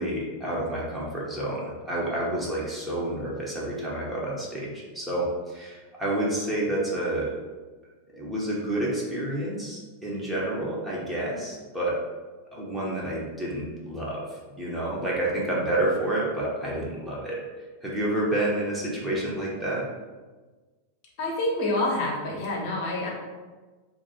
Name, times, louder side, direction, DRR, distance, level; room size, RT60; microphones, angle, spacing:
voice 1, 0.0-7.3 8.1-12.0 12.5-17.4 17.8-19.9, right 1 dB, 5° right, -6 dB, 0.8 m, -29 dB
voice 2, 21.2-23.1, left 1 dB, 45° left, -2 dB, 0.9 m, -27 dB
2.6 x 2.5 x 4.1 m, 1.3 s
figure-of-eight pair, 90°, 0 cm